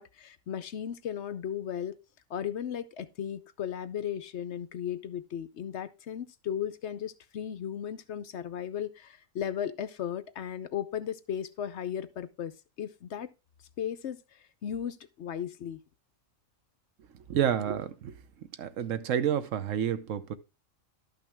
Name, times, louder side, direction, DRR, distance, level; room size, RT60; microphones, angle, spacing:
voice 1, 0.0-1.9 2.3-13.3 13.8-15.8, left 9 dB, 65° left, 0.9 m, -36 dB
voice 2, 17.3-18.1 18.6-20.3, right 9 dB, 75° right, 1.1 m, -29 dB
12.0 x 5.8 x 3.4 m
omnidirectional pair, 1.4 m